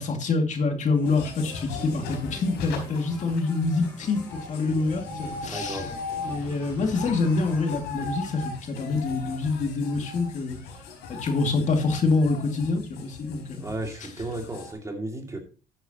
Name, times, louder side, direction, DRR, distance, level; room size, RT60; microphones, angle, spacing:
voice 1, 0.0-5.8 6.2-10.6 11.1-13.7, left 3 dB, 45° left, 2.4 m, -26 dB
sound 1, 0.9-7.8, equal, 10° left, 5.9 m, -45 dB
sound 2, 1.0-14.7, left 4 dB, 90° left, 4.5 m, -39 dB
voice 2, 5.5-5.9 13.6-15.4, right 2 dB, 20° right, 2.5 m, -34 dB
13.0 x 8.9 x 3.0 m
cardioid pair, 110°, 17 cm